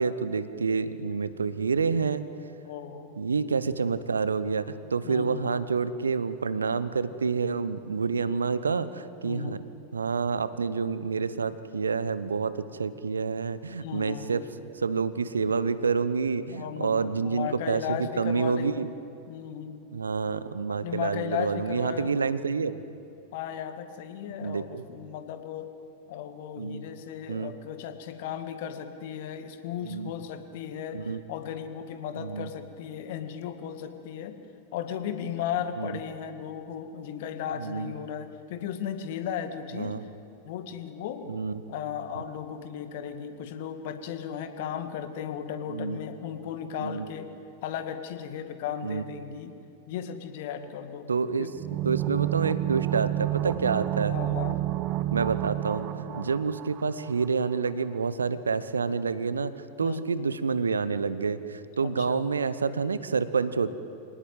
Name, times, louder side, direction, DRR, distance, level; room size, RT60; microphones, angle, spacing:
voice 1, 0.0-2.2 3.2-9.6 9.9-14.4 14.8-18.9 19.9-22.8 24.4-24.8 26.6-26.8 27.3-27.5 29.8-30.1 30.9-31.2 32.2-32.5 35.8-35.9 37.6-37.9 39.7-40.0 41.3-41.6 45.7-46.0 46.8-47.1 48.8-49.0 51.1-51.5 51.8-54.2 55.1-59.5 59.8-63.8, right 5 dB, 75° right, 14 dB, 1.0 m, -28 dB
voice 2, 2.6-3.1 5.0-5.4 9.2-9.6 13.8-14.3 16.5-18.8 19.3-19.8 20.8-22.2 23.3-25.7 26.1-34.4 34.7-39.9 40.4-41.3 41.7-47.3 47.6-49.5 49.9-51.1 51.4-51.5 54.1-54.6 56.1-56.3 59.8-60.0 61.8-62.3, left 9 dB, 50° left, 8 dB, 2.0 m, -36 dB
sound 1, 51.5-57.2 57.5-57.6, right 16 dB, 35° right, 0.8 m, -30 dB
26.0 x 19.0 x 9.1 m, 2.6 s
figure-of-eight pair, 90°, 0 cm